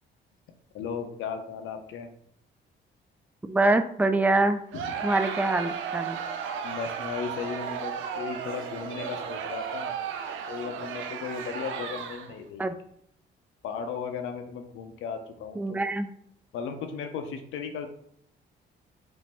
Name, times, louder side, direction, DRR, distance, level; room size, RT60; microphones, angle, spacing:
voice 1, 0.7-2.1 4.7-4.9 6.6-10.0 10.5-12.7 13.6-15.8 16.5-17.9, left 6 dB, 85° left, 6 dB, 0.6 m, -36 dB
voice 2, 3.4-4.6 5.0-6.2 12.6-12.7 15.6-16.1, right 2 dB, 10° right, 9 dB, 0.3 m, -24 dB
Crowd, 4.7-12.4, right 7 dB, 80° right, 0.4 m, -34 dB
5.2 x 2.0 x 3.4 m, 0.68 s
cardioid pair, 90°, 20 cm